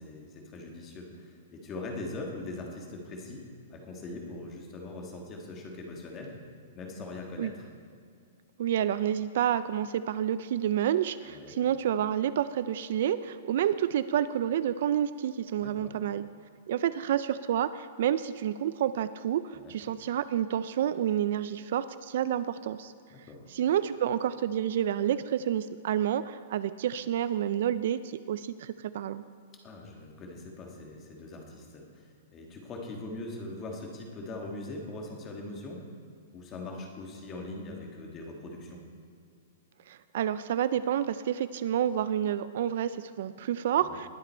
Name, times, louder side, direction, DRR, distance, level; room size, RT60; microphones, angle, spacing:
voice 1, 0.0-6.4 6.7-7.7 11.3-11.6 15.6-16.0 19.5-19.7 23.1-23.5 29.6-35.9 36.3-38.8 43.8-44.0, left 2 dB, 20° left, 1 dB, 1.5 m, -41 dB
voice 2, 8.6-16.2 16.7-22.9 23.5-29.2 39.9-44.1, right 10 dB, 50° right, 14 dB, 0.3 m, -29 dB
20.0 x 7.5 x 4.4 m, 2.2 s
hypercardioid pair, 170°, 0 cm